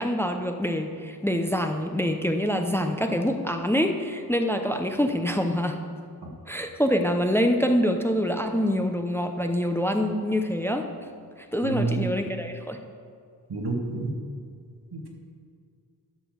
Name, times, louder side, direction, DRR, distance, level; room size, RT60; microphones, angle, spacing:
voice 1, 0.0-5.8 6.5-10.9 11.5-12.8, equal, 5° left, 5 dB, 0.6 m, -25 dB
voice 2, 11.6-12.2 13.5-14.2 14.9-15.1, right 3 dB, 75° right, 0 dB, 1.9 m, -29 dB
11.5 x 5.9 x 6.5 m, 2.3 s
wide cardioid pair, 80°, 39 cm